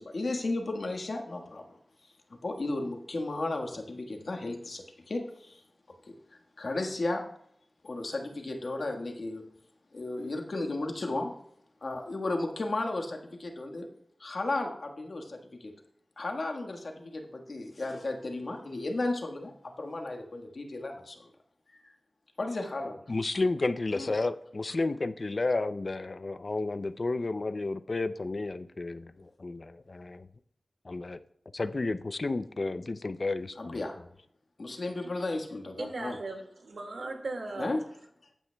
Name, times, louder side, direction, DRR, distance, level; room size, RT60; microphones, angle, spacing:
voice 1, 0.0-1.6 2.4-4.8 5.1-5.2 6.6-7.2 7.8-9.4 9.9-11.3 11.8-13.8 14.2-15.2 16.2-16.8 17.1-19.5 19.8-21.1 22.4-23.0 23.9-24.1 33.6-33.9 34.6-36.2 37.6-37.8, left 2 dB, 65° left, 2 dB, 1.5 m, -34 dB
voice 2, 23.1-30.3 30.8-31.2 31.5-33.8, left 3 dB, 50° left, 13 dB, 0.4 m, -32 dB
voice 3, 35.8-37.7, right 3 dB, 90° right, 3 dB, 2.0 m, -38 dB
14.5 x 9.0 x 2.3 m, 0.70 s
wide cardioid pair, 90°, 0 cm